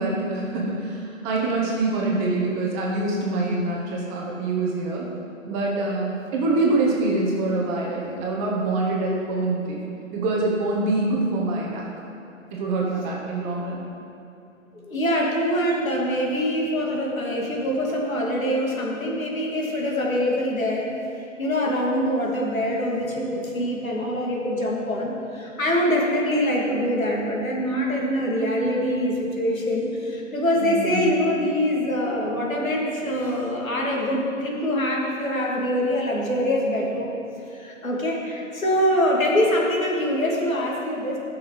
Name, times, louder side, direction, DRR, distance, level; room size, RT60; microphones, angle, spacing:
voice 1, 0.0-5.1 5.5-9.8 10.1-11.8 12.5-13.9 30.6-31.1, right 2 dB, 15° right, -3 dB, 1.2 m, -25 dB
voice 2, 14.8-20.9 21.4-37.1 37.5-41.2, equal, 85° left, -2 dB, 2.7 m, -24 dB
13.5 x 6.3 x 4.9 m, 2.7 s
hypercardioid pair, 145°, 40 cm